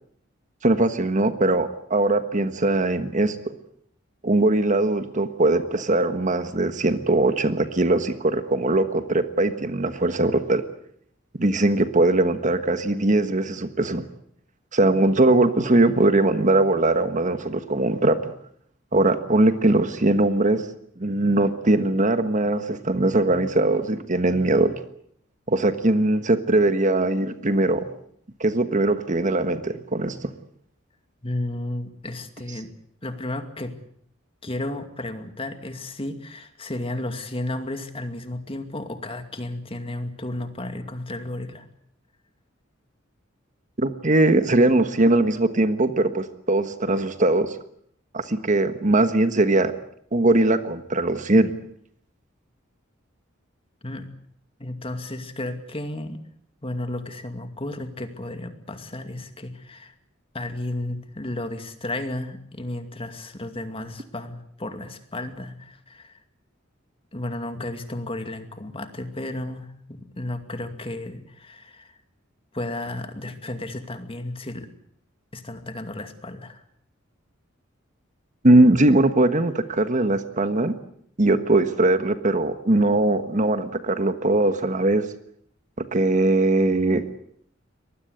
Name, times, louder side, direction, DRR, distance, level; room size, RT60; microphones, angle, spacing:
voice 1, 0.6-3.5 4.2-10.6 11.3-14.0 14.7-18.3 18.9-20.6 21.0-24.7 25.5-27.8 28.4-30.3 43.8-47.5 48.1-49.7 50.1-51.5 78.4-80.7 81.2-85.0 85.9-87.0, right 2 dB, 40° right, 10 dB, 1.4 m, -20 dB
voice 2, 31.2-32.7 33.0-33.7 34.4-41.7 53.8-54.1 54.6-56.2 56.6-59.9 60.3-66.2 67.1-72.0 72.5-74.7 75.3-76.6, left 1 dB, 30° left, 8 dB, 2.4 m, -33 dB
24.0 x 20.0 x 8.1 m, 0.66 s
head